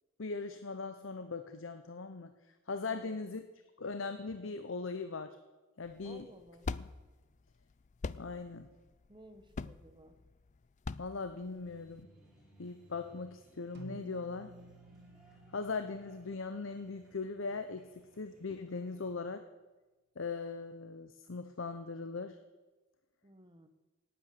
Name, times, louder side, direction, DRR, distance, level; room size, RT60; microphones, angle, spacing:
voice 1, 0.2-2.3 2.7-3.4 3.8-5.4 5.8-6.3 6.8-6.9 8.1-8.7 11.0-12.1 12.6-14.5 15.5-17.9 18.2-19.4 20.2-22.4, left 4 dB, 65° left, 9 dB, 0.8 m, -39 dB
voice 2, 2.9-3.2 6.0-6.6 9.1-10.2 23.2-23.7, right 1 dB, 20° right, 8 dB, 1.2 m, -56 dB
sound 1, 5.8-12.0, left 4 dB, 35° left, 0.4 m, -43 dB
sound 2, 11.6-19.1, right 1 dB, 5° right, 4.0 m, -64 dB
sound 3, 13.7-18.3, right 2 dB, 50° right, 1.5 m, -55 dB
18.0 x 9.0 x 6.7 m, 1.2 s
head